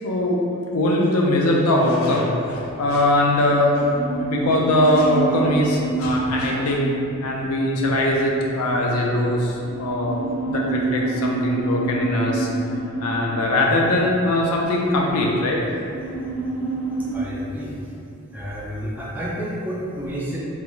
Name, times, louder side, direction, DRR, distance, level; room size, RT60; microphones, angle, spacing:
voice 1, 0.0-0.4 0.7-3.7 4.2-6.9 7.2-10.2 10.5-12.5 13.0-15.6, left 1 dB, 80° left, -2 dB, 0.4 m, -21 dB
sound 1, 2.5-17.1, right 3 dB, 65° left, 0.8 m, -29 dB
voice 2, 17.1-17.7 18.3-20.4, equal, 10° right, -6 dB, 0.3 m, -30 dB
2.4 x 2.3 x 3.0 m, 2.6 s
head